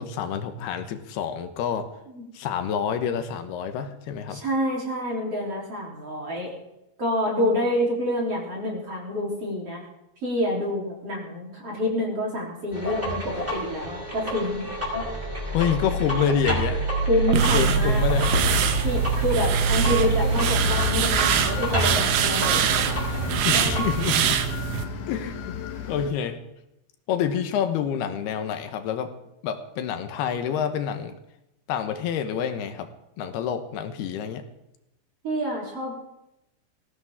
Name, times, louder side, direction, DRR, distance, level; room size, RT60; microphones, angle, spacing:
voice 1, 0.0-1.9 2.3-4.4 15.5-16.9 17.5-18.3 23.4-24.4 25.1-25.6 25.9-26.4 27.1-29.1 29.4-31.1 31.7-32.9 33.2-34.4, left 8 dB, 90° left, 8 dB, 3.2 m, -27 dB
voice 2, 4.3-6.5 7.0-9.8 10.2-14.7 17.0-18.0 18.8-22.6 35.2-35.9, left 1 dB, 40° right, -3 dB, 4.3 m, -27 dB
sound 1, 12.7-23.9, right 1 dB, 10° right, 4.9 m, -26 dB
sound 2, 17.3-24.8, right 9 dB, 80° right, 3.1 m, -24 dB
sound 3, 19.8-26.1, left 8 dB, 60° left, 2.4 m, -34 dB
19.0 x 16.0 x 3.7 m, 0.88 s
omnidirectional pair, 4.4 m